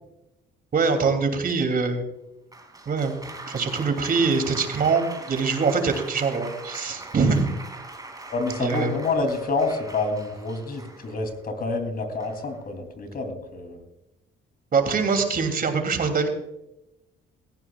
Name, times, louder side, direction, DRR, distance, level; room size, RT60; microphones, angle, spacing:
voice 1, 0.7-2.0 2.9-7.5 8.6-8.9 14.7-16.3, right 4 dB, 50° right, 6 dB, 2.9 m, -23 dB
Applause, 2.5-11.4 12.2-12.6, right 2 dB, 20° right, 2.7 m, -41 dB
voice 2, 8.3-13.8, left 3 dB, 50° left, 6 dB, 3.1 m, -28 dB
17.0 x 15.0 x 2.4 m, 0.90 s
cardioid pair, 90°, 20 cm